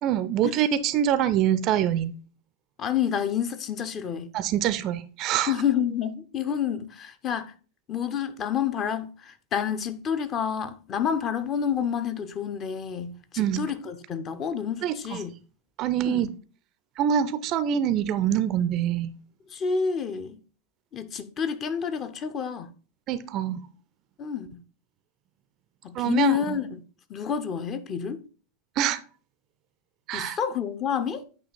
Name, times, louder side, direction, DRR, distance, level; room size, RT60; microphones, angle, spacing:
voice 1, 0.0-2.1 4.3-5.5 13.4-13.6 14.8-15.2 15.8-16.3 17.0-19.1 23.1-23.6 25.9-26.6 28.8-29.0 30.1-30.4, right 10 dB, 35° right, 0.4 m, -25 dB
voice 2, 2.8-4.3 5.5-7.5 7.9-15.3 16.0-16.3 19.5-20.4 20.9-22.7 24.2-24.6 25.8-26.8 27.1-28.2 30.1-31.2, left 8 dB, 30° left, 0.6 m, -29 dB
8.5 x 2.8 x 4.0 m
figure-of-eight pair, 90°, 0 cm